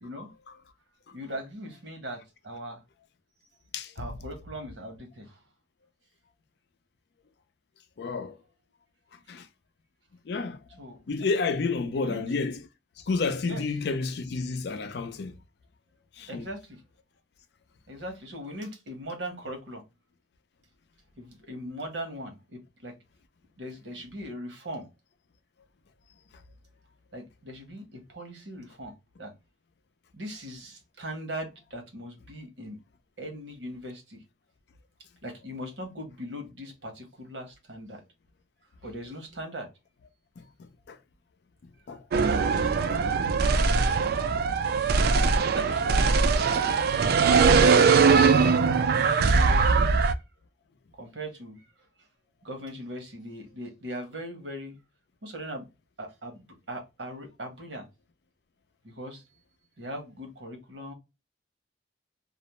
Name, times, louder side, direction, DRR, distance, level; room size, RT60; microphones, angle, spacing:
voice 1, 0.0-0.3 1.1-2.8 3.9-5.4 10.8-11.0 11.9-12.2 13.5-13.6 14.7-14.8 16.3-16.8 17.9-19.8 21.1-23.0 23.6-24.9 27.1-29.3 30.1-32.8 33.2-34.2 35.2-38.0 38.8-39.7 42.5-43.1 45.2-47.5 48.7-50.2 51.0-51.7 52.0-52.1 52.4-54.8 55.2-55.7 56.0-57.9 58.8-59.2 59.8-60.9, equal, 85° right, 1.0 m, -40 dB
voice 2, 8.0-8.4 9.3-9.4 10.3-10.6 11.1-12.6 13.1-15.3 16.2-16.4 40.9-41.0 41.9-42.0 42.9-43.0, left 4 dB, 65° left, 0.4 m, -30 dB
sound 1, 42.1-50.1, right 5 dB, 60° right, 0.3 m, -21 dB
2.4 x 2.0 x 2.9 m
head